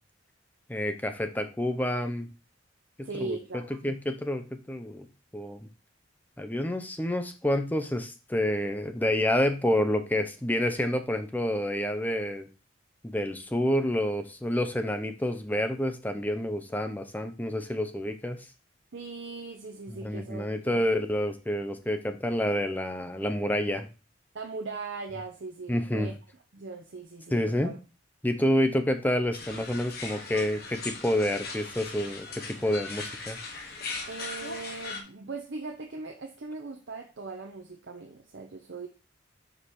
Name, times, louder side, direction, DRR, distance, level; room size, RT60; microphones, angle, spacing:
voice 1, 0.7-2.3 3.0-3.4 3.8-5.1 5.3-5.7 6.4-12.5 13.0-18.4 20.0-23.9 25.7-26.1 27.3-27.7 28.2-33.4, left 1 dB, 10° left, 7 dB, 0.6 m, -28 dB
voice 2, 3.0-4.0 18.9-20.8 24.3-26.1 26.5-27.8 34.1-38.9, right 3 dB, 60° right, 3 dB, 0.7 m, -39 dB
sound 1, 29.3-35.0, left 3 dB, 50° left, 1.1 m, -39 dB
5.2 x 4.7 x 4.2 m, 0.32 s
head